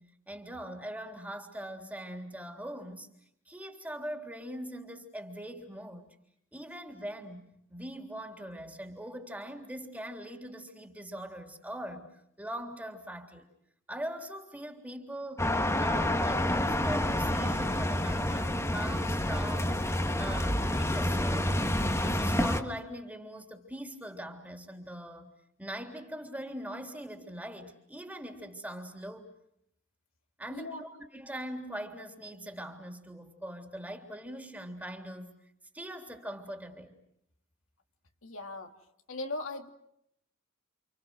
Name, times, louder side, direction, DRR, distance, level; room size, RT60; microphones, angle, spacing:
voice 1, 0.0-3.1 3.5-6.2 6.5-13.5 13.9-15.5 15.8-19.9 20.2-25.3 25.6-29.3 30.4-35.4 35.7-36.9, equal, 10° right, 3 dB, 3.5 m, -41 dB
sound 1, 15.4-22.6, left 1 dB, 15° left, 1.8 m, -28 dB
voice 2, 30.5-30.8 38.2-38.7 39.1-39.7, left 2 dB, 75° left, 4 dB, 2.7 m, -38 dB
29.0 x 28.5 x 6.4 m, 0.76 s
head